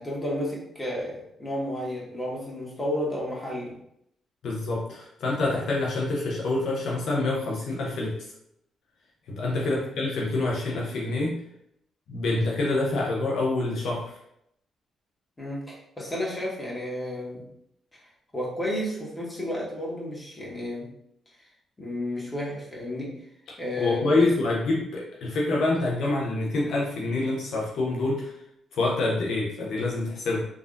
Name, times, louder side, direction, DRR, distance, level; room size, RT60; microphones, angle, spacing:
voice 1, 0.0-3.8 9.6-9.9 15.4-17.5 17.9-18.0 18.3-20.9 21.8-23.2 23.6-24.3, left 1 dB, 20° left, -4 dB, 1.3 m, -32 dB
voice 2, 4.4-8.2 9.3-11.4 12.1-14.2 23.8-28.4 28.7-30.5, left 2 dB, 70° left, -3 dB, 0.6 m, -26 dB
3.3 x 2.3 x 2.5 m, 0.74 s
hypercardioid pair, 45°, 0 cm